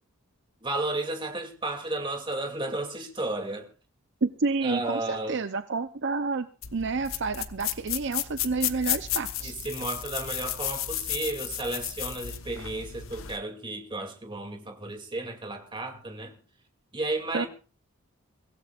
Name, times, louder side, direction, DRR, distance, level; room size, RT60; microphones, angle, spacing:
voice 1, 0.6-3.7 4.6-5.4 9.4-16.4 16.9-17.5, right 2 dB, 20° right, 2.6 m, -33 dB
voice 2, 4.2-6.5 6.7-9.5 17.3-17.5, right 4 dB, 55° right, 0.6 m, -29 dB
sound 1, 6.6-13.4, left 12 dB, 65° left, 1.0 m, -33 dB
24.0 x 16.5 x 2.4 m
head